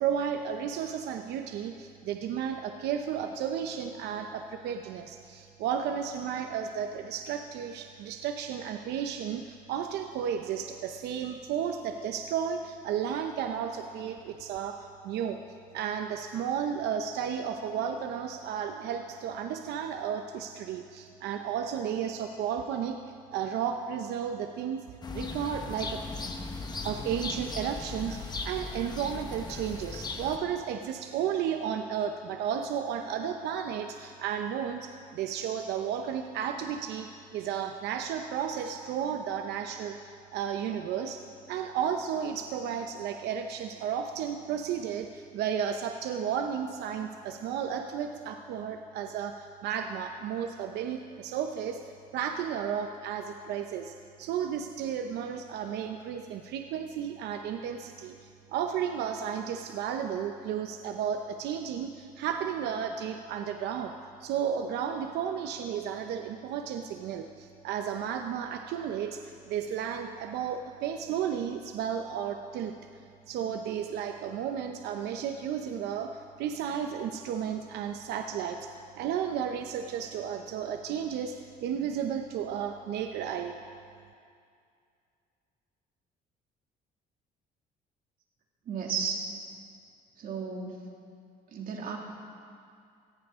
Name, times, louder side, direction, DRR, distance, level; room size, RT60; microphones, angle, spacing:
voice 1, 0.0-15.4 15.7-23.0 23.3-24.8 25.1-26.0 26.8-37.1 37.3-41.2 41.5-63.9 64.2-69.2 69.5-72.7 73.3-78.7 79.0-81.3 81.6-83.5, right 8 dB, 80° right, 5 dB, 0.7 m, -33 dB
sound 1, 25.0-30.4, left 3 dB, 25° left, 1.2 m, -37 dB
voice 2, 88.7-89.3 90.2-90.8 91.5-92.0, right 5 dB, 55° right, 0 dB, 2.4 m, -33 dB
18.5 x 14.5 x 3.7 m, 2.4 s
cardioid pair, 110°, 17 cm